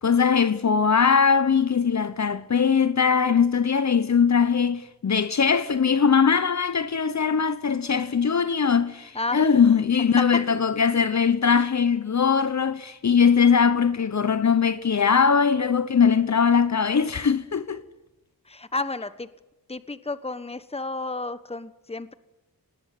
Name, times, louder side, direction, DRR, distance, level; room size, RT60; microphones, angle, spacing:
voice 1, 0.0-17.8, left 6 dB, 50° left, 1.0 m, -21 dB
voice 2, 9.1-9.5 18.5-19.3 19.7-22.1, left 3 dB, 15° left, 1.3 m, -32 dB
25.5 x 19.5 x 9.4 m
wide cardioid pair, 115°, 36 cm